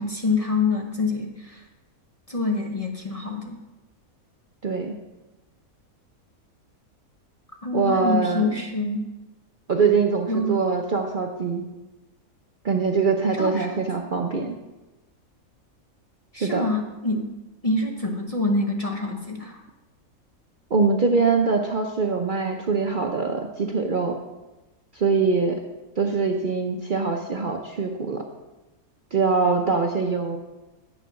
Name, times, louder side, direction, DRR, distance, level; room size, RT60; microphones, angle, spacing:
voice 1, 0.0-1.6 2.3-3.6 7.6-9.1 10.3-10.6 13.4-13.8 16.3-17.3 17.6-19.6, left 3 dB, 30° left, 1 dB, 0.8 m, -26 dB
voice 2, 4.6-4.9 7.7-8.5 9.7-11.6 12.6-14.6 16.4-16.7 20.7-24.2 24.9-25.6 26.0-28.2 29.1-30.4, right 4 dB, 45° right, 2 dB, 0.7 m, -23 dB
9.2 x 6.6 x 5.6 m, 1.1 s
omnidirectional pair, 1.5 m